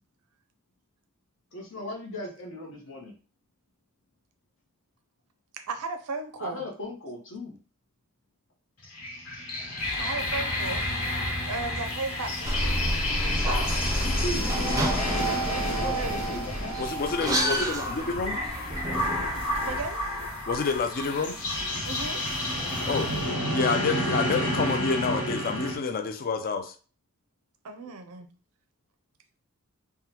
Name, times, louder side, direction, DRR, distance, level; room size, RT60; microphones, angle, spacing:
voice 1, 1.5-3.1 6.4-7.6 14.0-14.5 15.8-16.7, left 1 dB, 60° left, 0 dB, 1.0 m, -37 dB
voice 2, 5.5-6.6 10.0-10.9 11.5-13.8 15.4-16.3 19.6-20.0 21.9-22.2 27.6-28.3, right 3 dB, 80° right, 7 dB, 0.5 m, -36 dB
sound 1, 8.8-25.8, left 1 dB, 90° left, 1.2 m, -30 dB
sound 2, 9.8-23.3, equal, 25° left, 1.5 m, -45 dB
sound 3, 12.4-19.8, right 1 dB, 15° right, 0.5 m, -29 dB
voice 3, 16.8-18.4 20.5-21.4 22.9-23.2 23.5-26.7, left 5 dB, 40° left, 8 dB, 0.4 m, -28 dB
3.6 x 2.2 x 2.8 m, 0.38 s
head